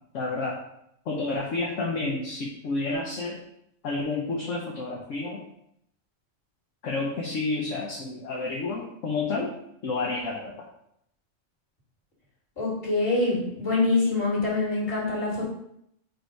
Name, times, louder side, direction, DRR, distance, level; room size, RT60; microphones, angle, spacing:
voice 1, 0.1-0.6 1.1-3.4 3.8-5.4 6.8-9.5 9.8-10.6, left 3 dB, 70° left, -1 dB, 1.2 m, -30 dB
voice 2, 12.6-15.4, left 3 dB, 45° left, -5 dB, 2.9 m, -25 dB
5.2 x 4.6 x 4.5 m, 0.76 s
omnidirectional pair, 1.4 m